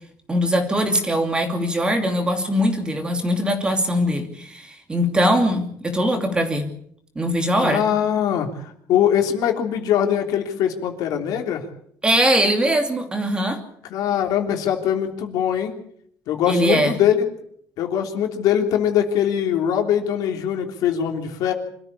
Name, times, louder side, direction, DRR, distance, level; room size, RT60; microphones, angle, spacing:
voice 1, 0.3-6.7 7.1-7.8 12.0-13.6 16.5-17.0, equal, 15° right, 5 dB, 2.7 m, -21 dB
voice 2, 7.6-11.7 13.9-15.7 16.3-17.2 17.8-21.5, left 9 dB, 60° left, 4 dB, 3.4 m, -22 dB
25.5 x 14.5 x 8.4 m, 0.66 s
cardioid pair, 160°, 7 cm